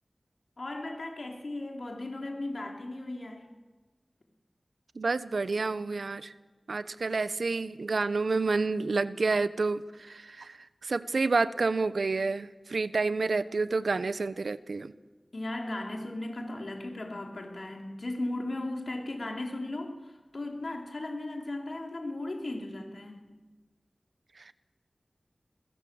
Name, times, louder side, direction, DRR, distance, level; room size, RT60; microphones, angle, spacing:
voice 1, 0.6-3.5 15.3-23.3, left 2 dB, 65° left, 2 dB, 4.2 m, -36 dB
voice 2, 4.9-6.3 6.7-14.9 24.4-24.5, right 3 dB, 85° right, 14 dB, 1.0 m, -29 dB
29.0 x 21.5 x 8.0 m, 1.3 s
wide cardioid pair, 55°, 0 cm